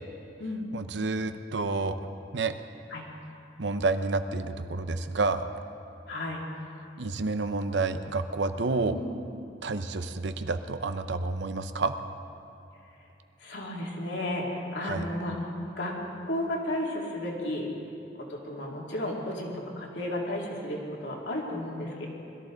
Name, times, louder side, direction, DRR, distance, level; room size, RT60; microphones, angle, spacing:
voice 1, 0.7-2.0 2.3-2.5 3.6-5.5 7.0-9.0 9.6-11.9 14.8-15.0, right 3 dB, 70° right, 10 dB, 0.7 m, -29 dB
voice 2, 6.1-6.4 8.8-9.1 13.4-15.3 15.8-15.9 16.3-17.7 18.3-22.1, left 1 dB, 75° left, -2 dB, 2.6 m, -33 dB
21.0 x 14.0 x 3.9 m, 2.8 s
head